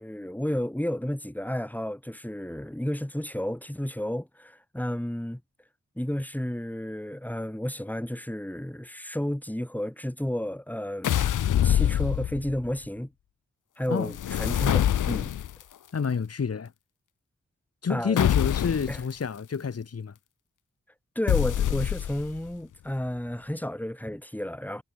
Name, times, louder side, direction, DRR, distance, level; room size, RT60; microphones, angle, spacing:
voice 1, 0.0-5.4 6.0-11.2 11.6-13.1 13.8-15.3 17.9-18.2 18.9-19.0 21.1-24.8, left 1 dB, 5° left, 2.6 m, -32 dB
sound 1, 11.0-12.7 14.1-15.6 18.2-19.0 21.3-22.4, left 10 dB, 75° left, 0.6 m, -25 dB
voice 2, 15.9-16.7 17.8-20.1, left 6 dB, 50° left, 1.2 m, -29 dB
cardioid pair, 50°, 31 cm